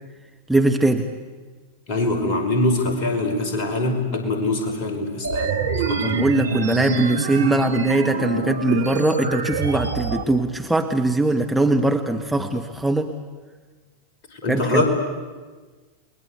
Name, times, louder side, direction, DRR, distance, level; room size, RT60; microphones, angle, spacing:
voice 1, 0.5-1.1 6.0-13.1 14.5-14.8, right 2 dB, 5° right, 3 dB, 1.4 m, -21 dB
voice 2, 1.9-5.6 5.9-6.1 14.3-14.8, left 2 dB, 40° left, 4 dB, 5.4 m, -23 dB
sound 1, 5.2-10.2, right 4 dB, 70° right, 1.5 m, -25 dB
29.5 x 21.5 x 8.2 m, 1.4 s
figure-of-eight pair, 90°, 0 cm